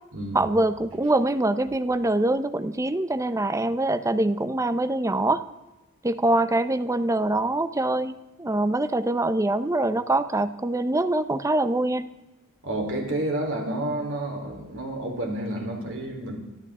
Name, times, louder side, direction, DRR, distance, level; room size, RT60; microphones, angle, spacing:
voice 1, 0.3-5.4 6.0-12.1, right 2 dB, 15° right, 12 dB, 0.7 m, -24 dB
voice 2, 12.6-16.4, right 1 dB, 60° right, 1 dB, 3.9 m, -30 dB
26.5 x 13.0 x 3.7 m, 1.1 s
head